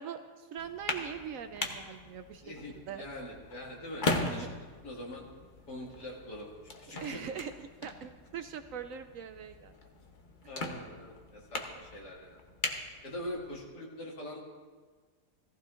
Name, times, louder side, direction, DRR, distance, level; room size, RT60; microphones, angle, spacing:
voice 1, 0.0-3.0 4.2-4.5 7.0-9.8, right 8 dB, 70° right, 9 dB, 0.8 m, -42 dB
sound 1, 0.6-13.7, left 2 dB, 40° left, 0.9 m, -40 dB
voice 2, 2.4-4.5 4.8-5.2 5.7-6.5 6.8-7.2 10.5-12.4 13.0-14.4, left 1 dB, 85° left, -3 dB, 2.7 m, -43 dB
17.5 x 15.0 x 2.5 m, 1.5 s
omnidirectional pair, 1.7 m